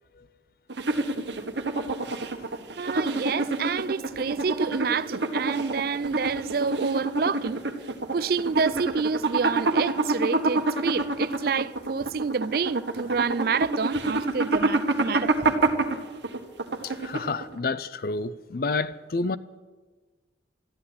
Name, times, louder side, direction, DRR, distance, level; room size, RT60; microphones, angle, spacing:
sound 1, 0.7-17.6, right 2 dB, 70° right, 1.4 m, -27 dB
voice 1, 2.8-7.6 8.1-15.5, right 5 dB, 50° right, 0.4 m, -28 dB
voice 2, 16.8-19.4, left 3 dB, 50° left, 0.5 m, -29 dB
13.5 x 11.5 x 8.7 m
head